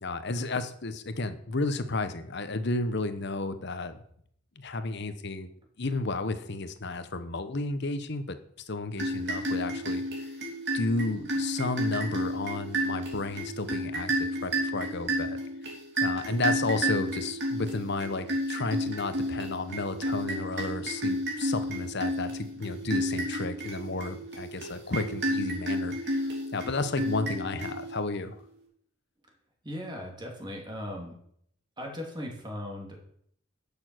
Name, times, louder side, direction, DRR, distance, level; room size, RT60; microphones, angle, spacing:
voice 1, 0.0-4.0 4.6-5.5 5.8-8.4 8.7-10.3 10.7-15.4 16.0-28.4, left 3 dB, 55° left, 11 dB, 1.0 m, -32 dB
sound 1, 8.9-28.2, equal, 55° right, 3.1 m, -32 dB
voice 2, 29.6-31.1 31.8-33.0, left 1 dB, 20° right, 0 dB, 2.8 m, -38 dB
11.0 x 7.0 x 6.2 m, 0.67 s
head